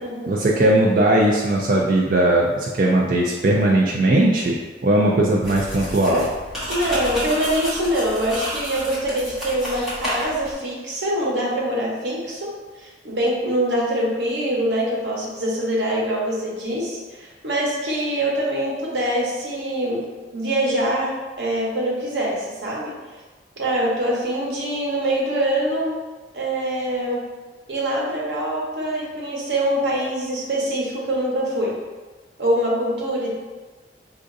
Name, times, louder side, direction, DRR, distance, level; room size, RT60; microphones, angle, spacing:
voice 1, 0.3-4.6 4.8-6.3, right 1 dB, 50° right, -3 dB, 0.4 m, -18 dB
sound 1, 5.4-10.5, equal, 5° right, 1.1 m, -31 dB
voice 2, 6.7-12.5 12.8-20.0 20.3-21.1 21.4-22.9 23.6-25.9 26.3-27.2 27.7-31.8 32.4-33.3, right 1 dB, 90° right, -4 dB, 1.0 m, -24 dB
4.9 x 2.5 x 2.6 m, 1.3 s
head